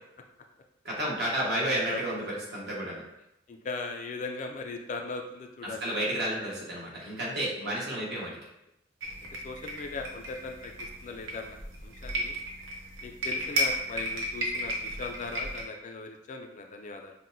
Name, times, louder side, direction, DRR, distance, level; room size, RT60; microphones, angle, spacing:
voice 1, 0.8-3.0 5.6-8.3, right 1 dB, 60° right, -5 dB, 1.2 m, -31 dB
voice 2, 3.5-5.8 7.6-8.1 9.4-10.7 11.0-11.6 11.8-12.3 13.0-17.1, left 3 dB, 40° left, 4 dB, 0.3 m, -39 dB
sound 1, 9.0-15.6, equal, 75° right, 0.8 m, -34 dB
5.6 x 2.2 x 2.6 m, 0.83 s
head